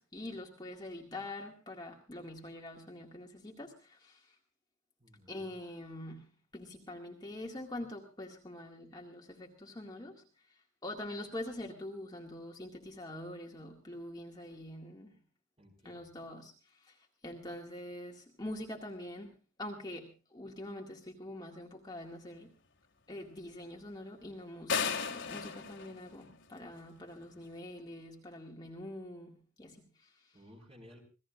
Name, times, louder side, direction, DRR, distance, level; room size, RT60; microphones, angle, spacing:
voice 1, 0.0-4.4 5.3-6.2 6.5-10.2 10.5-15.1 15.8-17.0 17.2-19.3 19.6-22.5 23.1-30.3, left 1 dB, 20° left, 0 dB, 2.0 m, -45 dB
voice 2, 5.0-5.5 15.6-16.1 30.3-31.0, left 1 dB, 25° right, 2 dB, 4.9 m, -57 dB
sound 1, 24.7-26.8, left 6 dB, 55° left, 2.2 m, -35 dB
26.5 x 17.0 x 2.5 m, 0.32 s
head